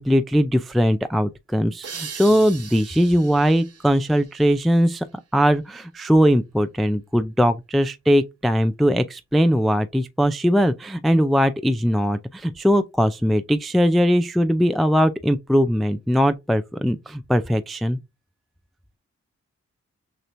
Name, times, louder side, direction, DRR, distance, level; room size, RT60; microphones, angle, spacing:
voice 1, 0.0-5.1 5.3-18.0, equal, ahead, 0.4 m, -20 dB
sound 1, 1.8-5.2, right 6 dB, 55° right, 0.9 m, -40 dB
6.4 x 3.0 x 2.5 m
cardioid pair, 65°, 30 cm